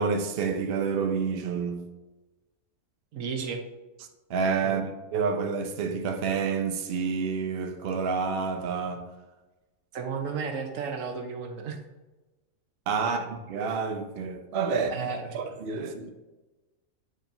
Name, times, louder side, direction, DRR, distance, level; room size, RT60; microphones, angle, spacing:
voice 1, 0.0-1.8 4.3-9.1 12.9-15.1 15.3-16.1, right 5 dB, 55° right, 0.7 m, -29 dB
voice 2, 3.1-3.6 4.6-4.8 9.9-11.8 13.1-13.2 14.9-15.4, right 5 dB, 75° right, 1.2 m, -33 dB
8.8 x 4.9 x 2.7 m
omnidirectional pair, 1.4 m